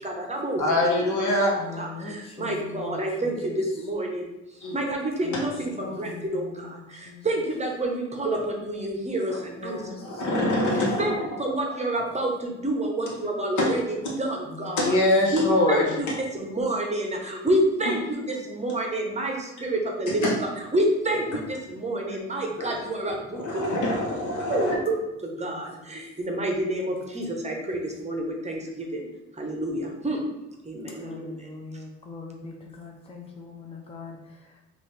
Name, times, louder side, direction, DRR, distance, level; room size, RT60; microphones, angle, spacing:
voice 1, 0.0-0.6 1.1-1.3 1.8-4.3 4.7-10.2 11.0-14.9 15.3-16.1 16.3-20.3 20.7-24.0 24.5-24.9 25.2-29.1 29.3-30.2 30.6-31.5, right 1 dB, 20° right, 1 dB, 0.7 m, -28 dB
voice 2, 0.6-1.6 4.6-4.7 9.3-9.4 10.0-11.2 13.6-13.7 14.0-14.1 14.8-16.0 17.9-18.0 20.1-20.3 22.6-22.8 23.1-24.8, left 1 dB, 75° left, -2 dB, 1.0 m, -24 dB
voice 3, 1.6-3.3 5.3-5.5 5.8-6.7 7.1-7.2 9.6-10.0 10.3-10.6 14.6-14.9 25.4-25.6 31.0-34.2, left 4 dB, 20° left, 1 dB, 0.5 m, -41 dB
3.9 x 2.5 x 3.2 m, 0.96 s
cardioid pair, 90°, 30 cm